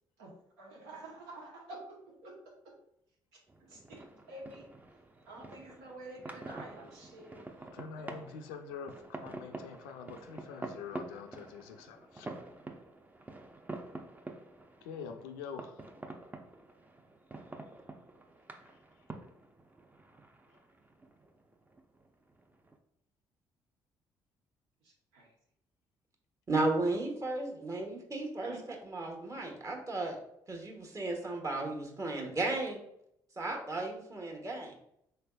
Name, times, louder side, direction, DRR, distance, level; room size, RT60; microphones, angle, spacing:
voice 1, 0.6-2.8 3.3-4.7 5.3-7.5 7.9-8.2 24.8-25.3 28.4-28.6, right 2 dB, 80° right, -1 dB, 0.8 m, -49 dB
sound 1, 3.5-22.8, right 2 dB, 15° right, 0.5 m, -48 dB
voice 2, 7.7-12.3 14.8-15.8 18.6-18.8 20.5-20.6, left 6 dB, 80° left, 5 dB, 0.4 m, -45 dB
voice 3, 26.5-28.5 28.8-30.2 30.5-32.8 33.4-34.8, right 2 dB, 30° right, 2 dB, 1.1 m, -34 dB
3.9 x 3.3 x 2.2 m, 0.76 s
hypercardioid pair, 45°, 11 cm